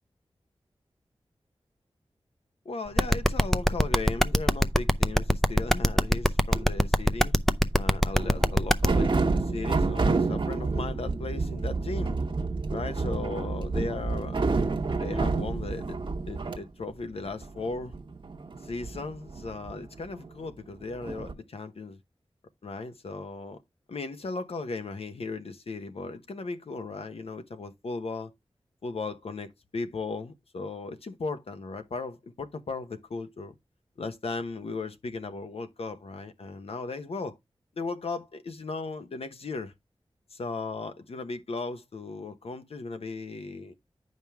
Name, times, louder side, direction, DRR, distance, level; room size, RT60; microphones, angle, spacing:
voice 1, 2.6-7.3 7.8-12.2 12.7-14.4 15.0-16.0 16.3-17.9 18.6-22.0 22.6-23.6 23.9-28.3 28.8-33.5 34.0-37.4 37.8-39.7 40.3-43.7, left 3 dB, 75° left, 1.0 m, -36 dB
sound 1, 3.0-8.9, equal, 5° left, 0.5 m, -21 dB
sound 2, 6.5-6.7 8.0-16.6 16.9-17.0 17.2-20.5 21.0-21.3, right 3 dB, 55° right, 1.0 m, -29 dB
9.2 x 5.3 x 3.5 m
wide cardioid pair, 95°, 10 cm